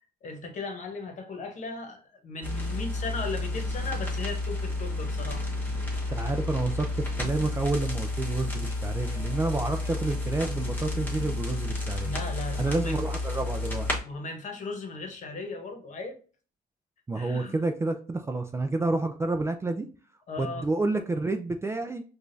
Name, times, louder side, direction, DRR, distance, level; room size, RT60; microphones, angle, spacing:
voice 1, 0.2-5.5 12.0-13.0 14.0-16.2 17.2-17.5 20.3-20.7, left 3 dB, 45° left, 5 dB, 1.1 m, -37 dB
sound 1, 2.4-14.0, left 2 dB, 10° left, 1.3 m, -31 dB
voice 2, 6.1-12.2 12.6-13.9 17.1-19.9 20.4-22.0, right 2 dB, 15° right, 6 dB, 0.4 m, -29 dB
4.7 x 2.4 x 2.6 m, 0.38 s
cardioid pair, 110°, 17 cm